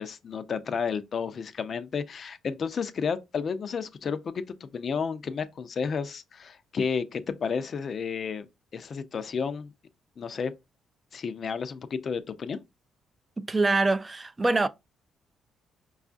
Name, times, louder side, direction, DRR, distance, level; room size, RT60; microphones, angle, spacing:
voice 1, 0.0-8.5 8.7-9.7 10.2-10.5 11.1-12.6, left 6 dB, 50° left, 0.5 m, -32 dB
voice 2, 13.4-14.7, right 3 dB, 20° right, 0.3 m, -24 dB
4.8 x 2.3 x 2.5 m
cardioid pair, 90°, 0 cm